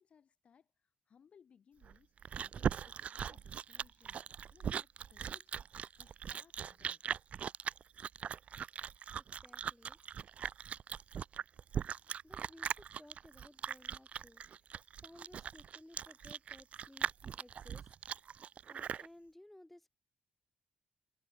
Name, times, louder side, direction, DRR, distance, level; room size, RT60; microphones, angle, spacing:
voice 1, 0.0-4.2 4.5-5.5 6.0-7.2, left 7 dB, 40° left, 5.0 m, -66 dB
Chewing mastication, 1.8-19.1, right 8 dB, 45° right, 1.0 m, -40 dB
voice 2, 9.2-10.0 12.2-17.9 18.2-19.9, left 1 dB, 5° left, 7.0 m, -59 dB
wide cardioid pair, 175°, 3 cm